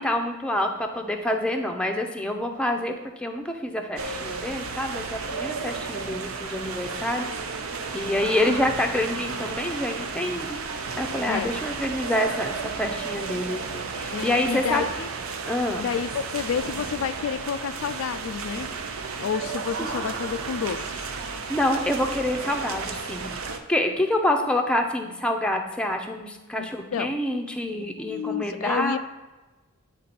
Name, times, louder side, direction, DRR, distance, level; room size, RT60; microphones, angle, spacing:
voice 1, 0.0-7.3 7.9-10.6 11.0-14.9 15.4-15.8 19.8-20.1 21.5-23.3 23.7-29.0, left 1 dB, 5° left, 3 dB, 0.6 m, -27 dB
sound 1, 4.0-23.6, right 4 dB, 70° right, 0.6 m, -33 dB
voice 2, 14.1-15.1 15.8-18.7 19.2-20.8 26.6-27.2 28.1-29.0, left 7 dB, 70° left, 11 dB, 0.3 m, -30 dB
9.3 x 3.7 x 4.2 m, 1.2 s
head